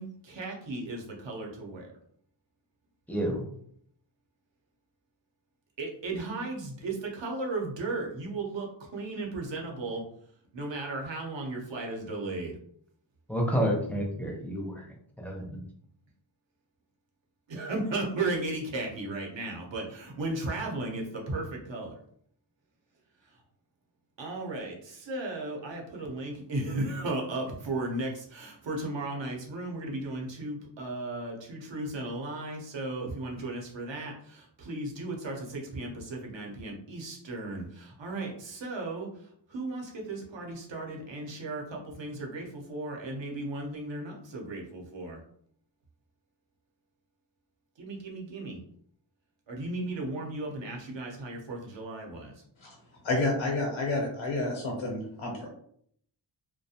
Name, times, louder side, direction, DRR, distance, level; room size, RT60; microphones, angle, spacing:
voice 1, 0.0-1.9 5.8-10.0 10.5-12.6 17.5-22.0 24.2-39.1 39.5-45.2 47.8-48.6 49.5-52.3, right 2 dB, 65° right, 0 dB, 0.8 m, -35 dB
voice 2, 3.1-3.5 13.3-15.6, equal, 5° left, -1 dB, 0.5 m, -30 dB
voice 3, 53.0-55.5, left 2 dB, 75° left, -1 dB, 0.8 m, -30 dB
2.4 x 2.1 x 2.7 m, 0.65 s
wide cardioid pair, 130°, 47 cm